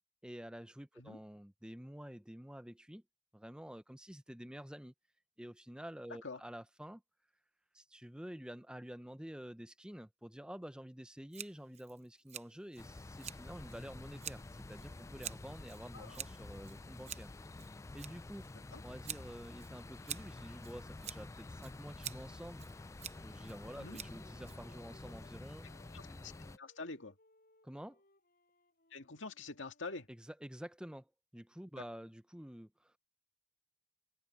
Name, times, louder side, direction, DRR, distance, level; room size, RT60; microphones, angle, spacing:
voice 1, 0.2-3.0 3.3-4.9 5.4-7.0 7.7-14.4 14.7-17.3 17.9-18.4 18.8-22.6 23.2-25.7 27.6-28.0 30.1-33.0, equal, 5° right, 0.7 m, -49 dB
Scissors, 11.3-25.0, right 10 dB, 35° right, 0.8 m, -49 dB
sound 1, 12.8-26.6, left 2 dB, 15° left, 0.3 m, -50 dB
Wind instrument woodwind instrument, 21.4-25.3 25.6-29.9, left 2 dB, 50° left, 6.0 m, -69 dB
voice 2, 25.9-26.3 26.6-27.2 28.9-30.1, left 3 dB, 90° left, 2.0 m, -46 dB
head